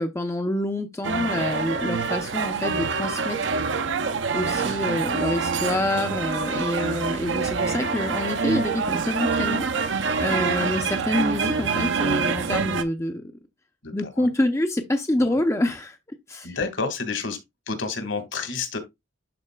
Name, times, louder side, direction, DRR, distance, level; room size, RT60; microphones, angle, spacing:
voice 1, 0.0-3.5 4.3-13.3 13.9-16.0 16.3-16.6, left 1 dB, 15° left, 0.5 m, -27 dB
sound 1, 1.0-12.8, right 5 dB, 60° right, 0.6 m, -26 dB
voice 2, 6.4-6.9 10.2-10.5 13.8-14.3 15.2-15.4 16.4-17.4 17.7-18.8, left 4 dB, 65° left, 1.7 m, -31 dB
12.0 x 4.1 x 2.2 m
head